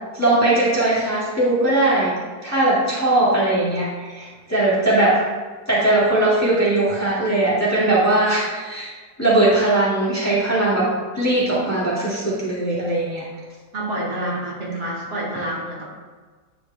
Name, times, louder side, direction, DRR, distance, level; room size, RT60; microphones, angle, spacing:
voice 1, 0.1-2.1 2.4-5.2 5.7-8.9 9.2-10.9 11.1-13.2, right 2 dB, 10° left, -9 dB, 1.6 m, -19 dB
voice 2, 13.7-15.8, right 1 dB, 70° right, -6 dB, 2.2 m, -28 dB
10.0 x 4.8 x 2.2 m, 1.4 s
omnidirectional pair, 1.9 m